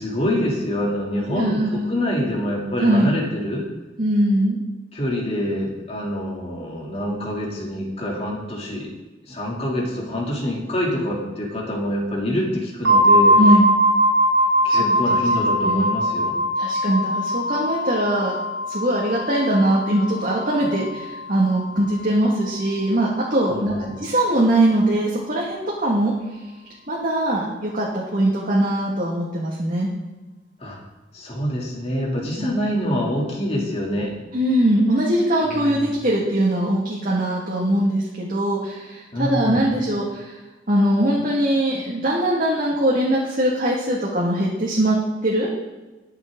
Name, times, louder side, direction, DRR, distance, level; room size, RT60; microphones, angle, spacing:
voice 1, 0.0-3.6 4.9-8.9 9.3-13.4 14.6-16.4 23.5-23.9 30.6-30.8 31.1-34.1 35.5-35.9 39.1-39.8, left 1 dB, 35° left, -3 dB, 3.3 m, -26 dB
voice 2, 1.3-1.9 2.8-3.1 4.0-4.6 13.4-13.6 14.7-15.0 15.6-15.8 16.6-18.4 18.7-26.1 26.9-29.9 32.4-32.5 34.3-40.4 40.7-45.5, right 1 dB, 50° right, -4 dB, 2.2 m, -21 dB
sound 1, 12.8-22.5, equal, 85° right, 1.3 m, -21 dB
21.0 x 7.3 x 4.0 m, 1.1 s
head